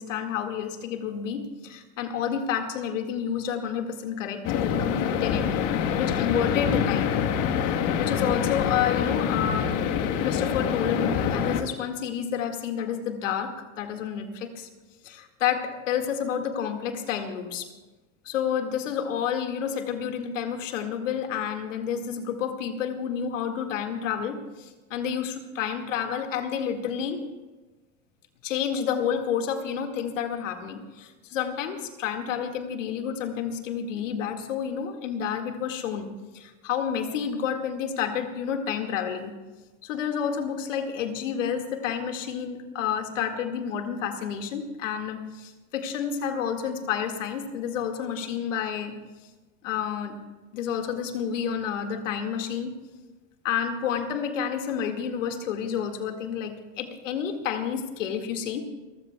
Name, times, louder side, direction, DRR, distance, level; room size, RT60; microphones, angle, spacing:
voice 1, 0.0-5.6 5.9-7.1 8.0-9.8 10.2-14.7 15.0-17.7 18.2-27.3 28.4-39.3 39.8-48.9 49.6-50.2 50.5-52.7 53.4-58.6, left 8 dB, 80° left, 5 dB, 2.1 m, -30 dB
sound 1, 4.4-11.6, left 8 dB, 55° left, 1.4 m, -26 dB
29.5 x 15.0 x 2.3 m, 1.2 s
hypercardioid pair, 95°, 37 cm